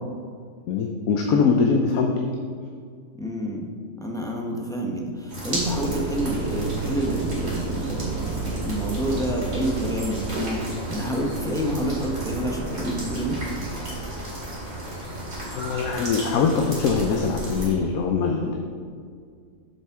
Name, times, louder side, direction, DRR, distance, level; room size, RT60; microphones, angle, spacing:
voice 1, 0.7-2.3 15.5-18.6, left 5 dB, 90° left, 2 dB, 1.1 m, -22 dB
voice 2, 3.2-3.7 4.0-13.4, equal, 5° left, -1 dB, 0.6 m, -28 dB
sound 1, 5.3-17.7, right 1 dB, 50° right, 2.5 m, -33 dB
sound 2, 5.6-14.2, right 5 dB, 65° right, 0.6 m, -33 dB
7.4 x 7.3 x 3.6 m, 2.1 s
omnidirectional pair, 1.4 m